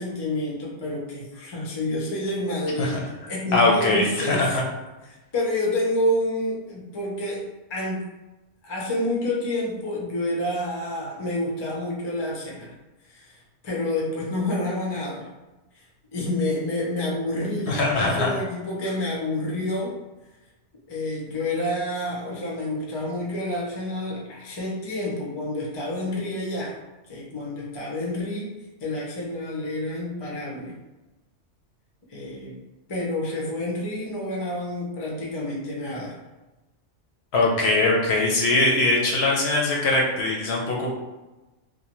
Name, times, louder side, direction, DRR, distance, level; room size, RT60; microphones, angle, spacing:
voice 1, 0.0-3.0 3.3-4.6 5.3-8.0 8.6-12.7 13.1-15.3 15.8-15.9 16.1-20.0 20.9-26.8 27.1-28.5 28.8-30.7 32.1-32.6 32.9-36.1, left 1 dB, 35° left, -4 dB, 0.4 m, -28 dB
voice 2, 3.5-4.6 17.7-18.3 37.3-40.9, left 2 dB, 65° left, -2 dB, 0.8 m, -21 dB
2.5 x 2.1 x 2.9 m, 1.1 s
omnidirectional pair, 1.2 m